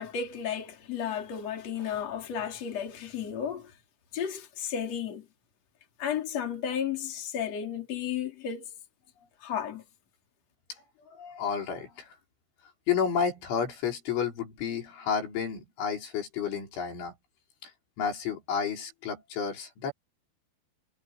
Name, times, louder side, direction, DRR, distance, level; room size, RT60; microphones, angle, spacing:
voice 1, 0.0-3.7 4.1-5.3 6.0-8.7 9.4-9.8, left 8 dB, 35° left, 4.6 m, -33 dB
voice 2, 10.7-12.2 12.9-17.2 17.6-17.7 18.0-19.9, left 7 dB, 90° left, 7.7 m, -31 dB
omnidirectional pair, 5.3 m